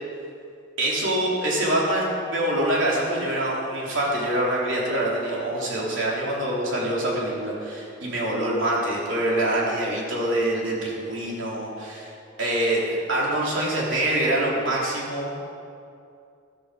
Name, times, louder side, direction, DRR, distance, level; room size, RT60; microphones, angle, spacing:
voice 1, 0.8-12.1 12.4-15.4, right 1 dB, 60° right, -4 dB, 3.5 m, -25 dB
14.5 x 13.0 x 5.1 m, 2.5 s
head